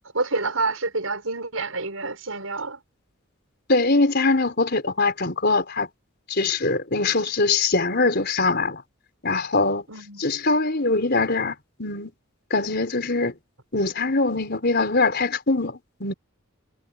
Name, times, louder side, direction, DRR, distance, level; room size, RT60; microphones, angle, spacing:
voice 1, 0.1-2.8 9.9-10.3, right 3 dB, 85° right, 6.0 m, -28 dB
voice 2, 3.7-5.9 6.3-8.8 9.2-9.8 10.2-12.1 12.5-13.3 13.7-16.1, left 3 dB, 50° left, 4.7 m, -22 dB
head